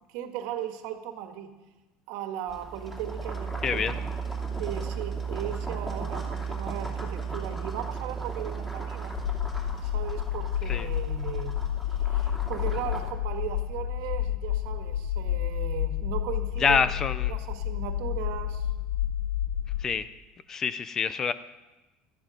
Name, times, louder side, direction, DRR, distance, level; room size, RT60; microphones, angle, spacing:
voice 1, 0.1-1.5 2.1-3.9 4.5-9.2 9.8-11.5 12.1-17.0 17.3-18.7, right 10 dB, 70° right, 6 dB, 1.8 m, -37 dB
sound 1, 2.5-13.1, right 5 dB, 5° left, 2.5 m, -35 dB
voice 2, 3.6-3.9 10.7-10.9 16.6-17.3 19.8-20.1 20.5-21.3, left 6 dB, 25° left, 14 dB, 0.5 m, -26 dB
sound 2, 9.1-19.8, left 11 dB, 85° left, 1.0 m, -30 dB
18.0 x 13.0 x 5.2 m, 1.1 s
cardioid pair, 165°, 2 cm